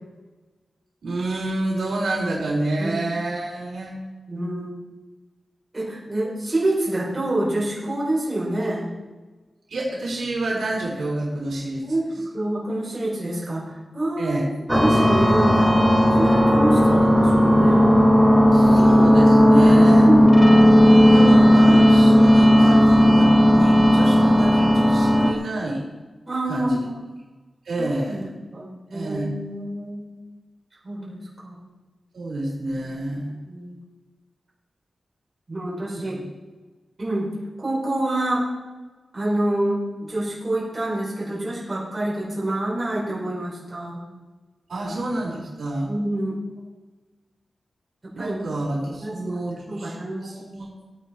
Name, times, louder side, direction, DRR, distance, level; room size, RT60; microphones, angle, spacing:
voice 1, 1.0-4.0 9.7-11.8 14.2-14.5 18.5-20.1 21.1-25.8 26.5-26.8 27.6-28.3 28.9-29.2 32.1-33.3 36.1-36.2 44.7-45.9 48.2-50.0 50.2-50.8, right 2 dB, 80° right, -5 dB, 4.1 m, -28 dB
voice 2, 4.3-4.7 5.7-8.9 11.9-12.1 12.3-14.4 14.7-15.7 16.1-18.0 18.6-18.9 20.1-20.3 20.8-21.7 26.3-26.9 27.8-30.1 30.8-31.6 32.7-32.8 33.4-33.8 35.5-36.2 37.0-37.3 37.6-38.4 39.1-44.0 44.8-44.9 45.8-46.4 48.2-48.4 49.0-50.3, right 1 dB, 25° right, -6 dB, 4.7 m, -27 dB
sound 1, 14.7-25.3, equal, ahead, 1.2 m, -14 dB
16.0 x 9.2 x 4.3 m, 1.2 s
wide cardioid pair, 150°, 0 cm